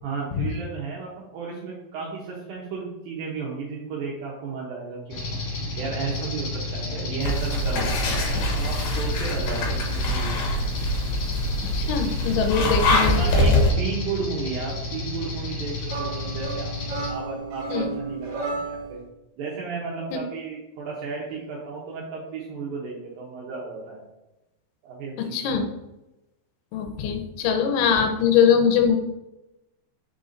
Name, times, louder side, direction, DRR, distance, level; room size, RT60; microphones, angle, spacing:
voice 1, 0.0-5.4 5.8-10.5 12.6-16.7 17.1-19.0 19.4-24.0 24.8-25.4, right 4 dB, 75° right, -4 dB, 2.1 m, -33 dB
sound 1, 5.1-17.1, left 2 dB, 50° left, 2.1 m, -32 dB
sound 2, 7.2-13.7, left 1 dB, 70° left, 2.2 m, -24 dB
voice 2, 11.6-13.3 17.7-17.9 25.3-25.6 26.7-29.0, left 7 dB, 90° left, 4 dB, 3.2 m, -22 dB
sound 3, 15.9-19.0, right 4 dB, 55° right, 2.1 m, -33 dB
8.3 x 5.5 x 2.6 m, 0.97 s
omnidirectional pair, 5.3 m